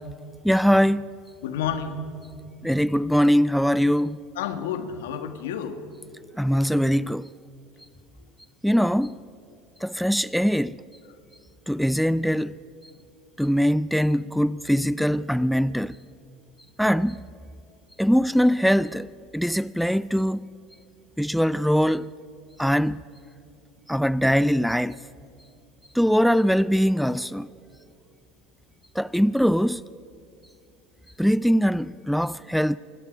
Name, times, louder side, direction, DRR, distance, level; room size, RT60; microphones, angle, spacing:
voice 1, 0.4-1.0 2.6-4.2 6.4-7.3 8.6-9.2 9.8-10.8 11.7-12.6 13.4-16.0 16.8-17.3 18.0-20.4 21.2-22.1 22.6-23.0 23.9-24.9 25.9-27.5 29.0-29.8 31.2-32.8, equal, ahead, 0.4 m, -22 dB
voice 2, 1.4-2.0 4.3-5.8, left 8 dB, 85° left, 1.6 m, -30 dB
24.5 x 20.5 x 5.2 m
hypercardioid pair, 90°, 0 cm